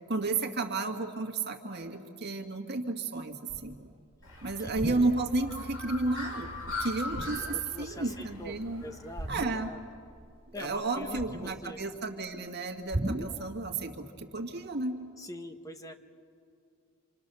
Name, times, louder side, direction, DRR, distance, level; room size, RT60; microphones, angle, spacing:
voice 1, 0.1-3.8 4.4-6.5 6.8-8.9 9.3-9.7 10.5-15.0, right 3 dB, 50° right, 4 dB, 2.1 m, -32 dB
sound 1, 3.5-3.9 4.6-5.5 5.9-6.1 6.4-7.7 9.2-10.0 10.2-11.9 12.9-13.5, right 1 dB, 30° right, 0.7 m, -38 dB
Bird, 4.2-9.4, left 2 dB, 90° left, 6.5 m, -41 dB
voice 2, 7.5-9.8 10.5-11.8 15.2-15.9, equal, 15° left, 6 dB, 1.1 m, -44 dB
27.0 x 27.0 x 7.0 m, 2.4 s
head